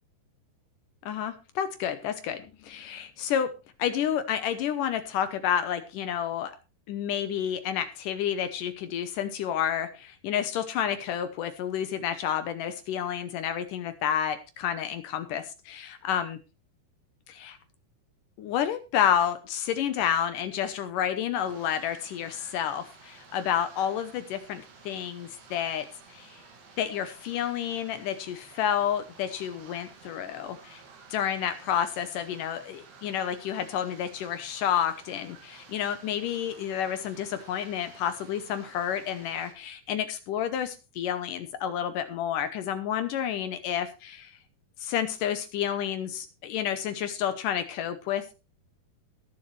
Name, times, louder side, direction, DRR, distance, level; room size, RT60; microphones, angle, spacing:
voice 1, 1.1-3.5 3.8-6.6 6.9-16.4 17.3-17.6 18.4-26.4 26.8-30.8 31.1-44.3 44.8-48.3, left 9 dB, 75° left, 10 dB, 2.2 m, -30 dB
sound 1, 21.4-39.5, right 4 dB, 80° right, 4.2 m, -52 dB
21.0 x 7.1 x 3.2 m, 0.30 s
omnidirectional pair, 4.4 m